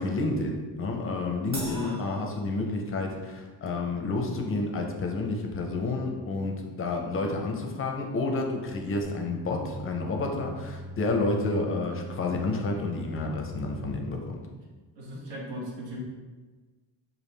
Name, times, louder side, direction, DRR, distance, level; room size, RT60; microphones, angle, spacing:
voice 1, 0.0-14.4, left 2 dB, 30° left, 1 dB, 0.5 m, -30 dB
Crash cymbal, 1.5-3.2, right 1 dB, 30° right, 0.9 m, -42 dB
sound 1, 9.0-13.9, equal, ahead, 0.7 m, -41 dB
voice 2, 15.0-16.0, equal, 75° right, -3 dB, 1.2 m, -38 dB
5.0 x 2.4 x 3.2 m, 1.3 s
cardioid pair, 155°, 43 cm